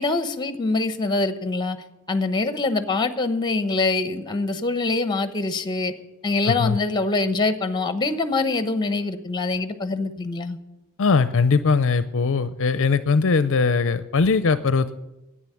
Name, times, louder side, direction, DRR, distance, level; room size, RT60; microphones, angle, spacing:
voice 1, 0.0-1.8 2.1-5.9 6.2-10.6, left 3 dB, 20° left, 11 dB, 0.9 m, -24 dB
voice 2, 6.4-6.8 11.0-14.9, left 4 dB, 60° left, 13 dB, 0.5 m, -20 dB
10.5 x 8.9 x 9.9 m, 0.99 s
head